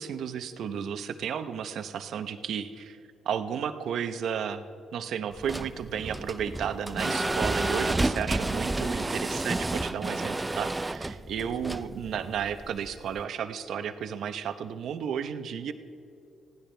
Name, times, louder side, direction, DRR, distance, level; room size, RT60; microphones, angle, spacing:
voice 1, 0.0-3.0 3.2-4.6 4.9-15.7, right 8 dB, 70° right, 10 dB, 0.9 m, -33 dB
sound 1, 5.3-13.2, right 2 dB, 15° right, 0.5 m, -31 dB
21.0 x 16.0 x 3.4 m, 2.6 s
cardioid pair, 90°, 0 cm